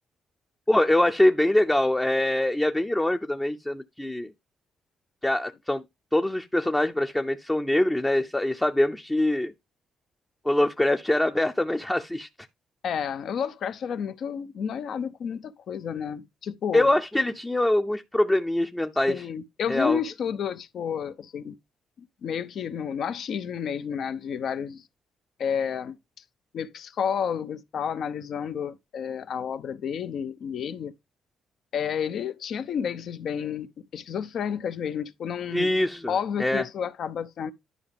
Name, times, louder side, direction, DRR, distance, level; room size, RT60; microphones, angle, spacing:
voice 1, 0.7-4.3 5.2-5.8 6.1-9.5 10.4-12.3 16.7-19.2 19.7-20.0 35.5-36.1 36.4-36.6, left 1 dB, 10° left, 0.6 m, -24 dB
voice 2, 12.8-16.9 19.1-21.5 22.0-24.8 25.4-26.0 26.5-30.9 31.7-35.7 36.1-37.5, left 7 dB, 65° left, 0.7 m, -31 dB
11.0 x 4.8 x 3.5 m
cardioid pair, 90°, 0 cm